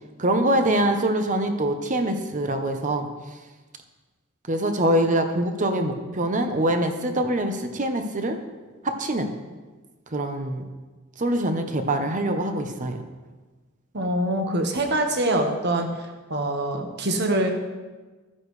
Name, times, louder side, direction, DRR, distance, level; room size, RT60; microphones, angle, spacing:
voice 1, 0.2-3.1 4.5-8.4 8.8-9.3 10.1-10.7 11.2-13.0, right 1 dB, 40° right, 6 dB, 0.9 m, -24 dB
voice 2, 13.9-15.9 16.3-17.6, right 1 dB, 55° right, 4 dB, 1.3 m, -24 dB
13.0 x 9.8 x 3.3 m, 1.3 s
head